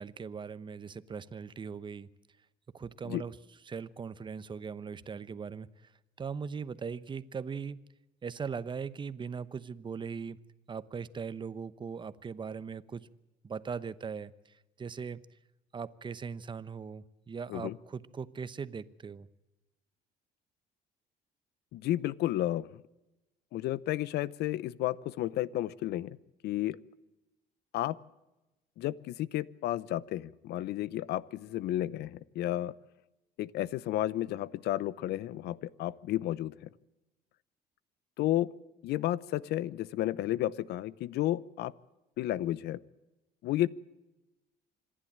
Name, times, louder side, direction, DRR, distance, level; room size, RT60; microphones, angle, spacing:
voice 1, 0.0-2.1 2.7-3.4 3.7-5.9 6.2-7.8 8.2-10.4 10.7-13.1 13.4-15.2 15.7-19.3, right 6 dB, 30° right, 16 dB, 0.9 m, -40 dB
voice 2, 21.7-22.8 23.5-26.2 26.4-26.8 27.7-28.0 28.8-32.7 33.4-36.5 38.2-38.5 38.8-41.7 42.2-42.8 43.4-43.7, left 14 dB, 75° left, 20 dB, 0.8 m, -32 dB
26.0 x 11.5 x 8.8 m, 1.0 s
cardioid pair, 110°, 17 cm